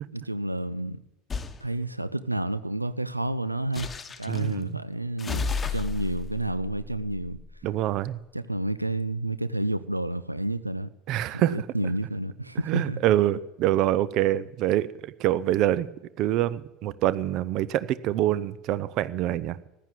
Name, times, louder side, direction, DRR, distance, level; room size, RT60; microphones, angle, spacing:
voice 1, 0.1-1.0 1.6-3.9 4.2-7.4 8.3-10.9 11.3-13.0, right 1 dB, 90° right, 0.5 m, -30 dB
sound 1, 1.3-1.6 3.7-4.5 5.2-7.8, left 5 dB, 20° left, 1.1 m, -33 dB
voice 2, 4.3-4.8 7.6-8.2 11.1-11.7 12.7-15.9 16.2-19.6, right 13 dB, 45° right, 0.6 m, -25 dB
15.0 x 10.5 x 7.6 m
figure-of-eight pair, 75°, 0 cm